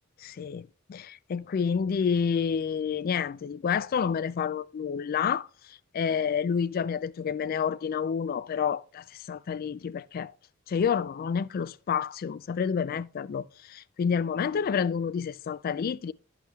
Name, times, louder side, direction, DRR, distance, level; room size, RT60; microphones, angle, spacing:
voice 1, 0.2-10.3 10.7-16.1, left 7 dB, 45° left, 0.3 m, -29 dB
10.0 x 8.3 x 2.3 m
head